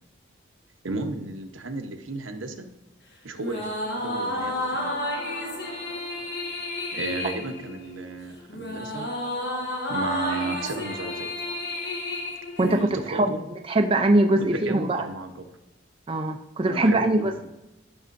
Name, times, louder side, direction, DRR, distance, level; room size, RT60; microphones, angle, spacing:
voice 1, 0.8-2.6 3.2-3.6 3.9-4.9 6.9-9.1 9.9-11.3 12.6-13.4 14.4-15.3 16.6-17.5, right 3 dB, 80° right, 5 dB, 0.9 m, -33 dB
sound 1, 3.4-13.1, left 1 dB, 55° left, 1.4 m, -31 dB
voice 2, 12.6-15.0 16.1-17.3, right 1 dB, 30° right, 4 dB, 0.4 m, -22 dB
13.5 x 6.2 x 2.6 m, 1.0 s
head